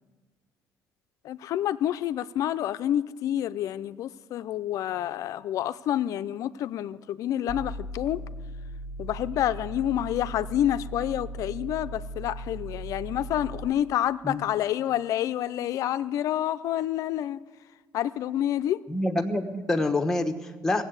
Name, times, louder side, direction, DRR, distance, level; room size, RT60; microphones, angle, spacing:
voice 1, 1.2-8.2 9.0-17.4 17.9-18.8, left 11 dB, 65° left, 13 dB, 0.5 m, -28 dB
sound 1, 7.5-13.7, right 1 dB, 60° right, 1.4 m, -38 dB
voice 2, 18.9-20.8, left 2 dB, 10° left, 4 dB, 1.1 m, -27 dB
17.5 x 7.8 x 8.0 m, 1.3 s
cardioid pair, 120°, 6 cm